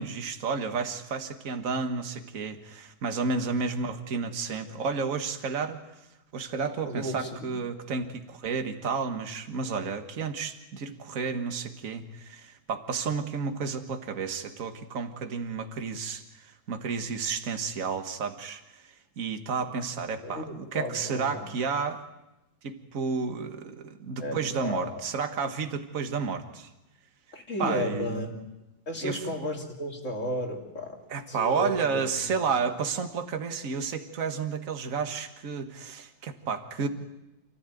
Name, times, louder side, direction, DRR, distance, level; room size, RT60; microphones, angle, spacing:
voice 1, 0.0-5.8 6.3-18.8 19.2-22.0 22.6-26.7 27.6-28.3 29.0-29.2 31.1-36.9, right 5 dB, 45° right, 6 dB, 1.9 m, -31 dB
voice 2, 6.8-7.5 20.2-21.5 24.2-24.9 27.3-28.4 28.9-31.0 31.3-32.3 36.8-36.9, left 1 dB, 40° left, 2 dB, 3.3 m, -34 dB
28.5 x 15.0 x 9.2 m, 0.96 s
omnidirectional pair, 2.1 m